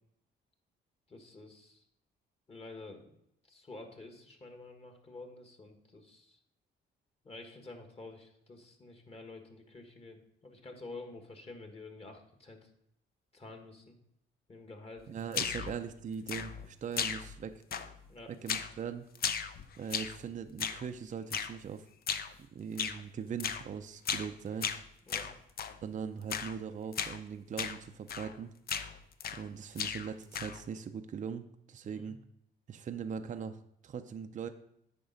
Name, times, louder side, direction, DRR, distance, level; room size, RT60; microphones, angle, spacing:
voice 1, 1.1-1.8 2.5-3.1 3.5-6.4 7.2-12.7 13.3-14.0 14.5-15.1 15.6-15.7 18.1-18.3 25.1-25.3 31.8-32.1, left 2 dB, 30° left, 5 dB, 1.5 m, -49 dB
voice 2, 15.1-17.6 18.4-19.1 19.8-21.9 22.5-24.7 25.8-28.5 29.3-32.2 32.7-34.5, right 7 dB, 40° right, 8 dB, 0.5 m, -40 dB
sound 1, 15.3-15.8 16.3-16.7 17.0-17.4 17.7-18.1 18.5-18.8 19.1-20.2 20.6-20.9 21.3-21.6 22.1-22.3 22.8-23.0 23.4-23.7 24.0-24.3 24.6-25.8 26.3-26.6 26.9-27.2 27.6-27.8 28.1-28.4 28.7-29.5 29.8-30.6, left 7 dB, 50° left, 0.6 m, -36 dB
8.7 x 5.4 x 3.9 m, 0.77 s
cardioid pair, 90°, 20 cm